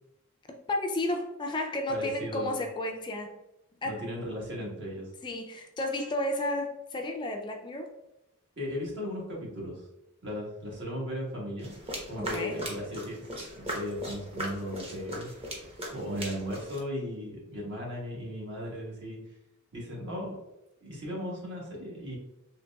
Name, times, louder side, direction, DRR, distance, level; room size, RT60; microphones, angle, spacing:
voice 1, 0.7-3.3 3.8-4.1 5.2-7.9 12.2-12.6, left 1 dB, 20° left, 3 dB, 0.3 m, -32 dB
voice 2, 1.9-2.5 3.8-5.1 8.6-9.9 10.2-11.7 12.1-13.2 13.6-15.5 15.9-19.2 19.7-20.3 20.8-22.2, equal, 60° right, -3 dB, 1.3 m, -36 dB
sound 1, 11.6-16.8, right 1 dB, 30° right, 0.8 m, -38 dB
3.9 x 3.0 x 2.2 m, 0.91 s
head